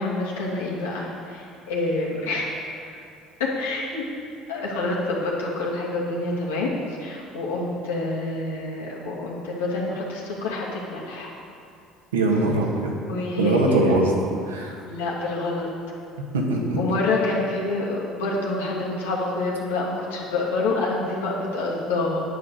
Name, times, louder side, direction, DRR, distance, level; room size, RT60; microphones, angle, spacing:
voice 1, 0.0-2.5 2.8-3.0 3.4-4.0 4.5-6.7 7.0-11.3 13.0-13.8 14.8-15.7 16.8-22.2, left 2 dB, 80° left, -4 dB, 2.8 m, -27 dB
voice 2, 12.1-12.9 13.4-14.1 14.5-14.7 16.3-16.8, right 2 dB, 90° right, -1 dB, 1.9 m, -21 dB
10.0 x 9.9 x 6.8 m, 2.5 s
hypercardioid pair, 65°, 0 cm